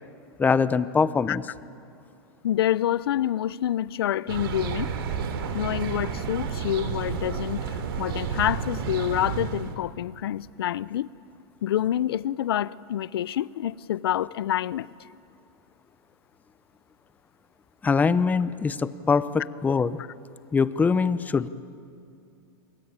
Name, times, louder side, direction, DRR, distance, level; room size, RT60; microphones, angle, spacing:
voice 1, 0.4-1.4 17.8-20.0 20.5-21.5, left 5 dB, 15° left, 0.8 m, -23 dB
voice 2, 2.4-4.9 5.5-11.1 11.6-14.9, left 11 dB, 85° left, 0.7 m, -27 dB
sound 1, 4.3-9.7, right 7 dB, 75° right, 3.1 m, -31 dB
27.5 x 23.0 x 9.0 m
hypercardioid pair, 130°, 13 cm